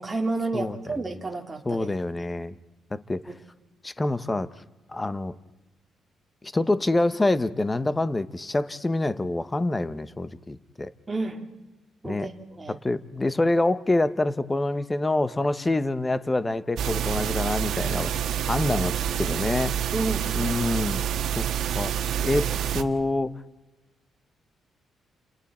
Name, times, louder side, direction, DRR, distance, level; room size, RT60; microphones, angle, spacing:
voice 1, 0.0-1.9 3.3-3.4 11.1-11.4 12.0-12.8 19.9-20.3 22.4-22.5, right 3 dB, 15° right, 2 dB, 2.7 m, -31 dB
voice 2, 1.7-2.5 2.9-3.3 3.8-4.5 4.9-5.3 6.4-10.9 12.0-12.3 12.8-19.7 20.3-21.1 21.3-21.4 21.7-22.4 22.7-23.4, left 2 dB, 15° left, 13 dB, 0.8 m, -26 dB
sound 1, 16.8-22.8, right 10 dB, 70° right, 1.4 m, -27 dB
30.0 x 29.0 x 4.3 m, 1.1 s
cardioid pair, 145°, 0 cm